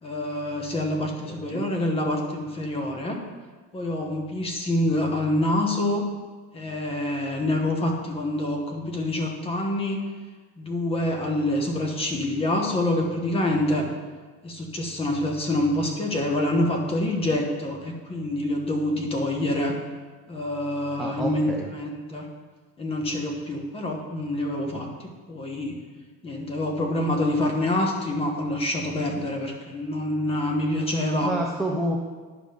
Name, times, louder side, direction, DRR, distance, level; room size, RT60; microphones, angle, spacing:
voice 1, 0.0-3.2 3.7-6.0 6.5-10.0 10.6-13.9 14.4-19.8 20.3-22.3 22.8-25.8 26.2-31.3, left 1 dB, 20° left, 2 dB, 1.0 m, -26 dB
voice 2, 1.0-1.7 21.0-21.7 31.2-32.0, right 1 dB, ahead, -1 dB, 0.4 m, -29 dB
10.5 x 5.0 x 5.0 m, 1.4 s
cardioid pair, 170°, 30 cm